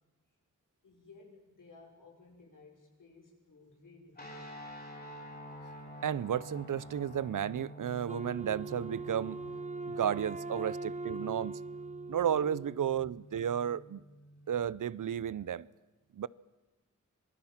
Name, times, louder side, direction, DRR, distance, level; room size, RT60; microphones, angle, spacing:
voice 1, 0.8-4.6, left 3 dB, 80° left, 6.1 m, -57 dB
sound 1, 4.2-14.5, equal, 30° left, 5.7 m, -49 dB
voice 2, 6.0-9.4 9.9-11.6 12.1-14.0 14.5-15.7 16.1-16.3, right 9 dB, 80° right, 0.7 m, -33 dB
Wind instrument woodwind instrument, 8.1-13.1, right 2 dB, 25° right, 1.0 m, -41 dB
26.5 x 19.5 x 7.3 m
wide cardioid pair, 85°, 31 cm